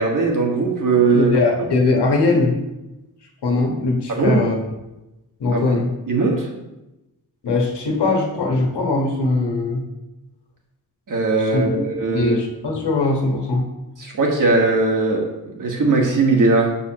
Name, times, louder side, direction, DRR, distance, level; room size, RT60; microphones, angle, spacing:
voice 1, 0.0-1.7 4.1-4.4 5.5-5.6 6.1-6.5 11.1-12.4 14.0-15.2 15.6-16.7, right 3 dB, 50° right, 0 dB, 1.5 m, -19 dB
voice 2, 1.1-2.6 3.4-4.6 5.4-5.9 7.4-9.8 11.5-11.7 12.1-13.7, left 3 dB, 85° left, 0 dB, 1.5 m, -20 dB
7.1 x 6.1 x 3.0 m, 0.97 s
wide cardioid pair, 120°, 39 cm